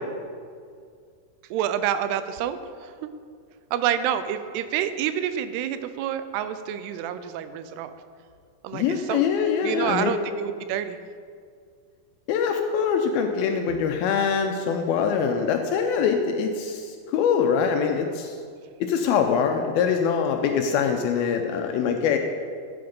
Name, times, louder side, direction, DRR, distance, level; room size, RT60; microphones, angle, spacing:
voice 1, 1.5-3.1 3.7-7.9 8.6-9.2 9.6-11.0, right 10 dB, 85° right, 11 dB, 2.6 m, -28 dB
voice 2, 8.7-10.1 12.3-18.4 18.8-22.2, left 6 dB, 80° left, 5 dB, 2.3 m, -23 dB
14.5 x 7.8 x 5.3 m, 2.2 s
omnidirectional pair, 4.7 m